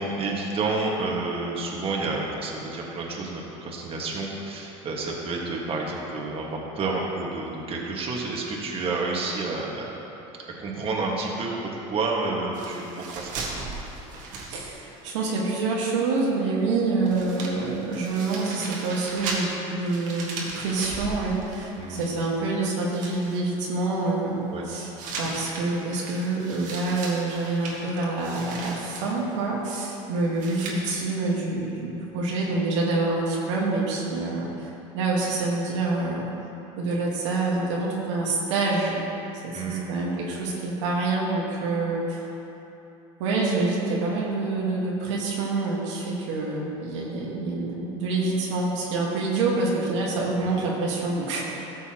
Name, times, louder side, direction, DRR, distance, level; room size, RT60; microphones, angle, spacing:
voice 1, 0.0-9.9 10.6-13.6 21.7-22.2 24.5-24.7 39.5-40.0 50.4-50.5, right 3 dB, 40° right, -2 dB, 1.6 m, -30 dB
sound 1, 12.5-15.1 15.4-15.5 16.7-16.8 17.0-22.4 22.7-23.4 25.0-29.1 30.4-30.9, right 3 dB, 60° right, 1.8 m, -37 dB
voice 2, 14.5-24.9 25.2-34.5 34.9-36.3 36.8-39.0 39.4-42.2 43.2-51.4, right 3 dB, 85° right, -4 dB, 1.6 m, -27 dB
13.5 x 7.0 x 3.0 m, 3.0 s
supercardioid pair, 95°, 15 cm